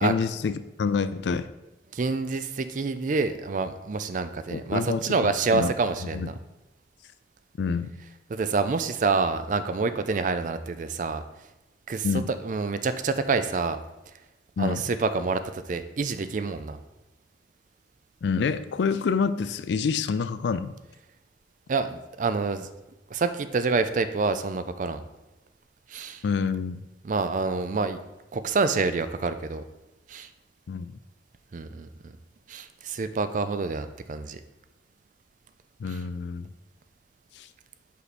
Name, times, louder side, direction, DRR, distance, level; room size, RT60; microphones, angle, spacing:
voice 1, 0.0-1.5 4.5-5.7 6.1-6.3 7.6-7.9 12.0-12.3 14.6-14.8 18.2-20.7 26.2-26.8 30.7-31.0 35.8-36.5 37.4-37.5, left 5 dB, 75° left, 12 dB, 0.4 m, -27 dB
voice 2, 1.9-6.4 8.3-11.2 11.9-12.1 12.4-13.8 14.6-16.8 21.7-22.7 23.1-25.0 25.9-26.2 27.0-28.0 28.3-29.6 30.1-30.3 31.5-32.1 32.5-34.4 35.9-36.0, right 4 dB, 45° right, 11 dB, 0.4 m, -27 dB
5.6 x 4.6 x 4.1 m, 1.0 s
head